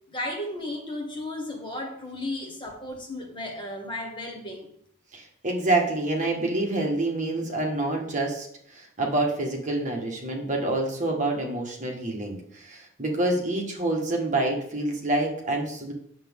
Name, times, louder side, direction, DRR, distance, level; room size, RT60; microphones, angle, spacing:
voice 1, 0.1-4.7, left 1 dB, 25° left, 1 dB, 1.5 m, -34 dB
voice 2, 5.1-15.9, right 2 dB, 35° right, 1 dB, 1.6 m, -27 dB
8.7 x 7.2 x 3.7 m, 0.67 s
head